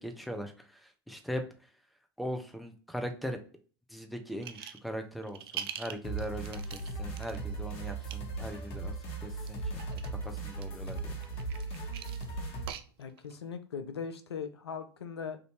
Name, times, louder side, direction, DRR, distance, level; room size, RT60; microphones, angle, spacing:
voice 1, 0.0-1.4 2.2-3.4 3.9-8.9 9.2-11.2, equal, ahead, 5 dB, 0.6 m, -40 dB
sound 1, 4.4-4.9 5.2-7.4 7.9-8.1 9.4-10.1 10.6-13.4, right 10 dB, 70° right, 0.4 m, -43 dB
sound 2, 6.0-12.7, right 3 dB, 45° left, 1.3 m, -38 dB
voice 2, 13.0-15.4, left 6 dB, 85° left, 9 dB, 0.4 m, -39 dB
3.5 x 2.6 x 2.8 m, 0.39 s
hypercardioid pair, 80°, 13 cm